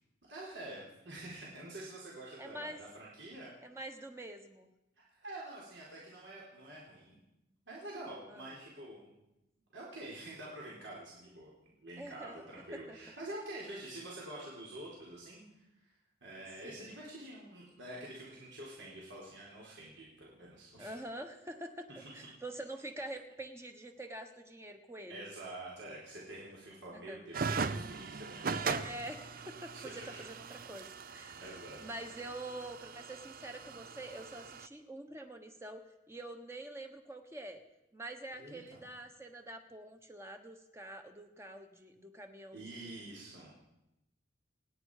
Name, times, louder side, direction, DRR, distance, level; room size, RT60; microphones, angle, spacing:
voice 1, 0.2-3.5 5.1-7.2 7.7-9.1 9.7-11.5 11.8-15.4 15.8-15.9 16.2-20.9 21.9-22.1 25.1-28.9 29.8-30.2 31.4-31.9 38.3-38.8 42.5-43.5, right 1 dB, 70° right, -5 dB, 4.0 m, -47 dB
voice 2, 2.4-2.8 3.6-4.7 8.3-8.5 12.0-12.4 12.7-13.0 16.6-16.9 20.8-21.9 22.1-25.2 26.9-27.2 28.6-37.6 37.9-43.0, right 1 dB, 15° right, 6 dB, 1.2 m, -46 dB
sound 1, 27.3-34.7, right 5 dB, 45° right, 0.5 m, -40 dB
28.5 x 9.9 x 4.9 m, 0.91 s
head